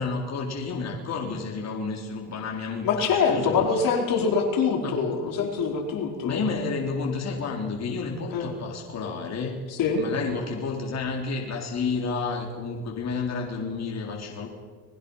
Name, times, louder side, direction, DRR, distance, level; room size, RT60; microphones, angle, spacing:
voice 1, 0.0-3.6 4.2-4.3 4.8-5.0 6.2-9.5 10.0-14.5, left 4 dB, 45° left, 0 dB, 4.3 m, -30 dB
voice 2, 2.8-6.4 8.3-8.5 9.7-10.0, left 5 dB, 65° left, 1 dB, 4.6 m, -24 dB
30.0 x 21.5 x 5.8 m, 1.5 s
cardioid pair, 100°, 37 cm